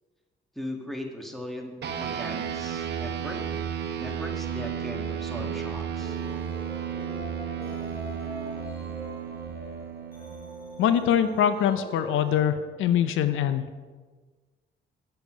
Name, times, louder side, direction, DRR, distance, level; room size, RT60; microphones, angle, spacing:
voice 1, 0.5-3.4 4.0-6.2, equal, ahead, 2 dB, 1.6 m, -38 dB
sound 1, 1.8-11.6, right 8 dB, 60° right, 1.0 m, -33 dB
sound 2, 6.0-12.4, equal, 50° left, 3.2 m, -42 dB
voice 2, 10.8-13.6, left 9 dB, 85° left, 11 dB, 0.6 m, -23 dB
8.5 x 8.2 x 5.0 m, 1.4 s
cardioid pair, 90°, 20 cm